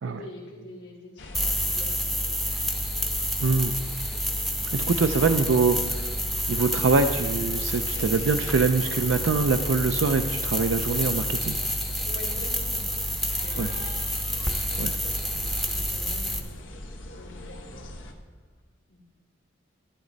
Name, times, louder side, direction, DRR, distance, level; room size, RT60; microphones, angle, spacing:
voice 1, 0.0-2.5 12.0-12.8 13.2-13.7 15.0-16.7 17.2-18.0 18.9-19.0, left 2 dB, 70° left, -6 dB, 1.7 m, -45 dB
sound 1, 1.2-18.1, left 1 dB, 90° left, 1.1 m, -42 dB
sound 2, 1.3-16.4, equal, ahead, 0.7 m, -29 dB
voice 2, 3.4-3.7 4.7-6.0 6.5-11.6 13.6-13.7 14.8-15.0, right 4 dB, 85° right, 8 dB, 0.5 m, -24 dB
11.5 x 10.5 x 4.0 m, 1.4 s
head